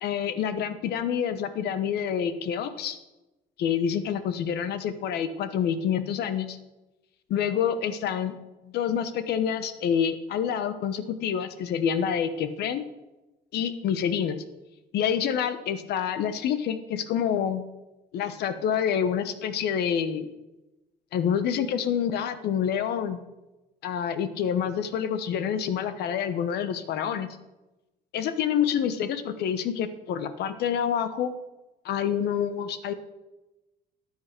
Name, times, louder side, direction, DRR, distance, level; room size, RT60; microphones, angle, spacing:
voice 1, 0.0-3.0 3.6-6.6 7.3-8.4 8.7-12.8 13.5-14.4 14.9-17.6 18.1-20.3 21.1-23.2 23.8-27.3 28.1-31.3 31.8-32.9, left 8 dB, 75° left, 11 dB, 1.2 m, -27 dB
13.0 x 8.8 x 6.1 m, 1.0 s
cardioid pair, 110°, 17 cm